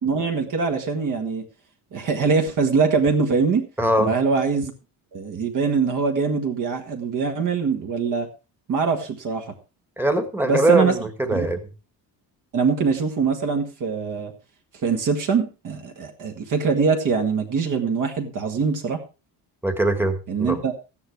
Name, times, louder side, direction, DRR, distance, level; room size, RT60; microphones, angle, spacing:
voice 1, 0.0-1.5 1.9-3.7 4.0-4.7 5.1-8.3 8.7-9.5 10.4-10.9 11.3-11.5 12.5-14.3 14.8-19.0 20.3-20.7, right 5 dB, 45° right, 4 dB, 1.8 m, -23 dB
voice 2, 3.8-4.1 10.0-11.6 19.6-20.6, right 1 dB, 5° right, 8 dB, 1.5 m, -22 dB
14.0 x 9.6 x 4.6 m, 0.31 s
cardioid pair, 165°, 42 cm